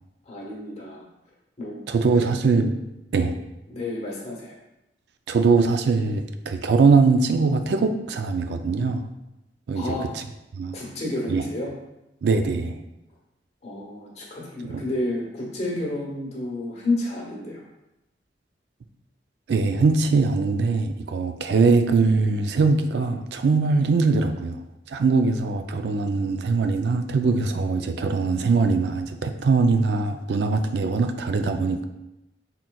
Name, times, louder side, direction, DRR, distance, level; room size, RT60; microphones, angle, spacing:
voice 1, 0.2-1.0 1.6-1.8 2.2-2.3 3.7-4.5 9.7-10.0 10.7-11.7 13.6-17.6, left 2 dB, 40° left, -3 dB, 1.2 m, -30 dB
voice 2, 1.9-2.7 3.1-3.4 5.3-9.0 9.7-9.8 10.5-10.8 11.3-11.4 12.2-12.8 14.6-14.8 19.5-24.6 24.9-31.8, right 4 dB, 65° right, 7 dB, 0.4 m, -21 dB
5.8 x 3.8 x 2.2 m, 0.92 s
head